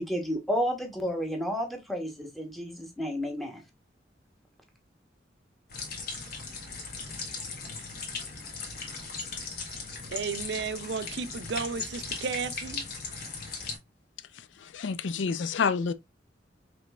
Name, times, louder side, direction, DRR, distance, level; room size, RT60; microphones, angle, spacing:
voice 1, 0.0-3.6, equal, ahead, 0.9 m, -31 dB
sound 1, 5.7-13.8, left 4 dB, 55° left, 1.3 m, -38 dB
voice 2, 10.1-12.8, right 5 dB, 65° right, 0.4 m, -33 dB
voice 3, 14.7-15.9, left 5 dB, 85° left, 0.4 m, -28 dB
5.1 x 3.1 x 2.3 m
head